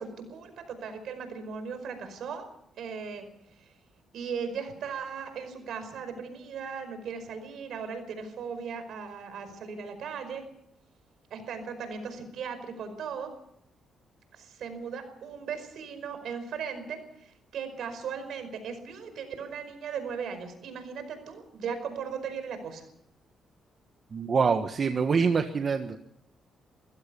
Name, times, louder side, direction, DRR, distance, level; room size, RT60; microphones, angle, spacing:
voice 1, 0.0-2.5 2.8-3.7 4.1-10.5 11.3-13.3 14.3-22.9, right 6 dB, 75° right, 9 dB, 5.0 m, -37 dB
voice 2, 24.1-26.0, right 5 dB, 50° right, 7 dB, 1.4 m, -25 dB
24.0 x 16.0 x 7.0 m, 0.76 s
cardioid pair, 75°, 0 cm